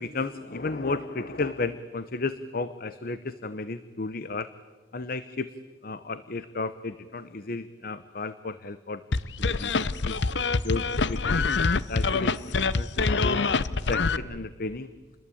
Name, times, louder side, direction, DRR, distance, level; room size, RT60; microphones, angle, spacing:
voice 1, 0.0-4.5 4.9-5.5 5.8-9.1 9.4-9.7 10.0-10.2 10.6-11.5 11.9-13.4 13.9-14.9, left 3 dB, 55° left, 13 dB, 0.9 m, -33 dB
sound 1, 9.1-14.2, left 4 dB, 80° left, 0.8 m, -25 dB
28.5 x 21.5 x 8.6 m, 1.4 s
head